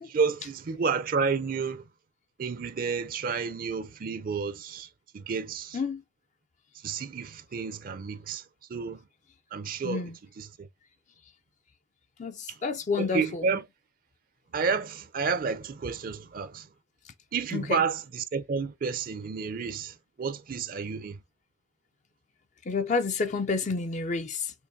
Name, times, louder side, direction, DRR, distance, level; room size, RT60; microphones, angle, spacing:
voice 1, 0.1-1.8 2.4-4.9 5.1-5.8 6.8-8.4 8.7-9.0 9.5-10.0 10.4-10.5 13.0-13.6 14.5-16.7 17.3-21.2, right 5 dB, 55° right, 0.5 m, -30 dB
voice 2, 9.8-10.2 12.2-13.6 17.5-17.8 22.7-24.5, left 4 dB, 45° left, 0.4 m, -30 dB
6.4 x 3.0 x 2.6 m
head